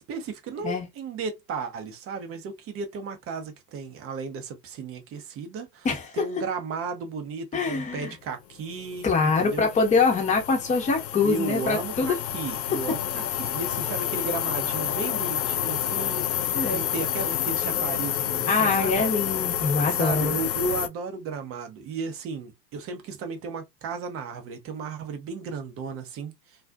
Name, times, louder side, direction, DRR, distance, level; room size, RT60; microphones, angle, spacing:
voice 1, 0.1-5.9 6.1-9.7 11.2-19.1 19.9-26.3, right 4 dB, 30° right, 0.6 m, -34 dB
voice 2, 5.8-6.2 7.5-8.1 9.0-12.1 12.9-13.0 16.5-16.8 18.5-20.4, left 4 dB, 15° left, 0.8 m, -24 dB
sound 1, 8.7-20.9, left 11 dB, 80° left, 0.6 m, -29 dB
2.4 x 2.4 x 2.2 m
hypercardioid pair, 105°, 50 cm